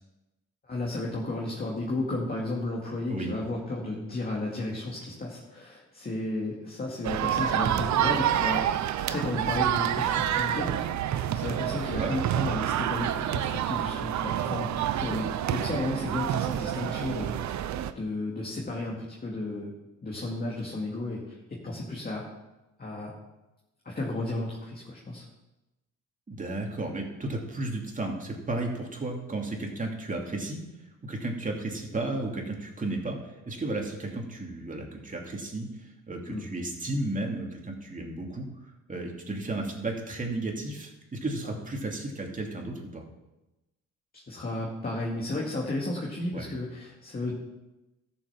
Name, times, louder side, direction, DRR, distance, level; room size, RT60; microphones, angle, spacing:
voice 1, 0.6-8.6 9.1-11.0 11.3-14.7 15.0-17.6 18.0-19.7 20.0-22.3 22.8-23.1 23.8-25.3 36.3-36.5 41.4-41.6 44.3-47.3, left 2 dB, 30° left, -3 dB, 2.4 m, -33 dB
sound 1, 7.0-17.9, right 10 dB, 65° right, 0.7 m, -28 dB
voice 2, 26.3-30.6 31.0-38.5 38.9-43.0 46.3-46.5, right 2 dB, 25° right, 1 dB, 2.7 m, -33 dB
13.5 x 7.2 x 5.9 m, 0.99 s
cardioid pair, 90°, 30 cm